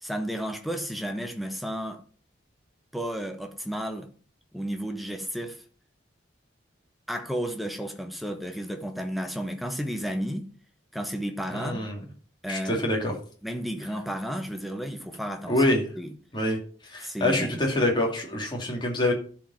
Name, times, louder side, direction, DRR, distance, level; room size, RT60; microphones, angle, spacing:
voice 1, 0.0-2.0 2.9-4.1 4.5-5.6 7.1-10.5 10.9-11.8 12.4-12.8 13.4-15.6 16.0-16.1 17.0-17.6, equal, ahead, 1.1 m, -32 dB
voice 2, 11.5-12.0 12.5-13.1 15.5-15.8 16.3-16.6 16.8-19.1, left 1 dB, 25° left, 2.8 m, -25 dB
12.5 x 5.2 x 5.8 m
head